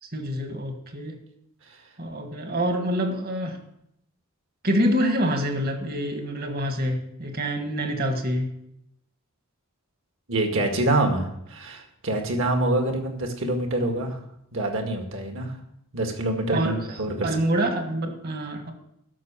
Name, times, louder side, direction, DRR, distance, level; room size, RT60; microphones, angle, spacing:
voice 1, 0.0-1.2 2.0-3.6 4.6-8.5 16.5-17.0 17.2-18.7, equal, 45° right, 5 dB, 1.7 m, -26 dB
voice 2, 10.3-14.2 14.5-15.5 15.9-17.3, right 1 dB, 65° right, 3 dB, 2.0 m, -26 dB
12.0 x 6.4 x 7.3 m, 0.76 s
head